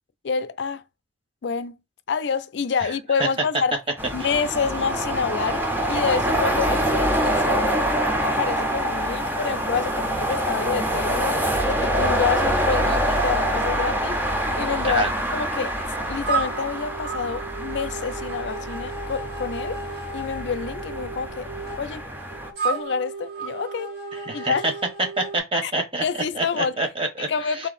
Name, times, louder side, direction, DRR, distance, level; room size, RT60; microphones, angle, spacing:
voice 1, 0.2-0.8 1.4-1.8 2.1-3.8 4.1-15.0 15.3-19.8 20.1-21.5 21.8-22.1 22.6-23.9 24.3-24.6 25.6-25.7 26.0-26.8 27.3-27.7, left 5 dB, 70° left, 0.4 m, -28 dB
sound 1, 4.0-22.5, right 1 dB, 10° right, 0.7 m, -25 dB
sound 2, 16.2-25.4, right 4 dB, 60° right, 1.2 m, -33 dB
voice 2, 24.3-24.7 25.2-26.0 26.3-27.3, right 2 dB, 30° right, 1.2 m, -26 dB
4.1 x 2.8 x 4.1 m
head